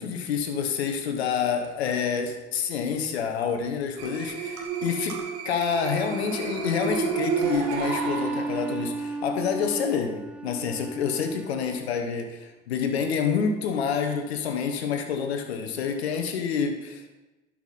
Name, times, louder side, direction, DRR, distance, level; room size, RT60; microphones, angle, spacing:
voice 1, 0.0-5.2 5.4-17.0, left 6 dB, 80° left, 5 dB, 1.1 m, -28 dB
sound 1, 4.0-9.0, right 5 dB, 55° right, 1.9 m, -31 dB
Bowed string instrument, 7.3-12.0, right 3 dB, 5° right, 0.3 m, -34 dB
11.5 x 6.1 x 4.1 m, 1.1 s
hypercardioid pair, 65°, 32 cm